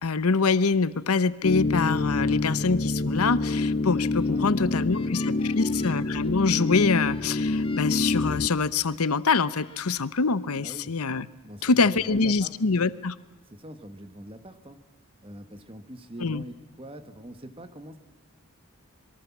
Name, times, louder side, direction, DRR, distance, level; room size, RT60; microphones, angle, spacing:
voice 1, 0.0-11.3 11.6-13.1 16.2-16.4, left 4 dB, 90° left, 17 dB, 0.9 m, -25 dB
sound 1, 1.4-8.5, left 2 dB, 40° left, 0.7 m, -27 dB
sound 2, 4.1-9.0 9.4-10.0, left 5 dB, 25° left, 1.7 m, -51 dB
voice 2, 4.3-5.7 10.6-10.9 11.4-12.5 13.5-14.8 15.2-18.0, right 1 dB, 25° right, 10 dB, 1.6 m, -43 dB
26.5 x 22.5 x 7.3 m, 1.2 s
head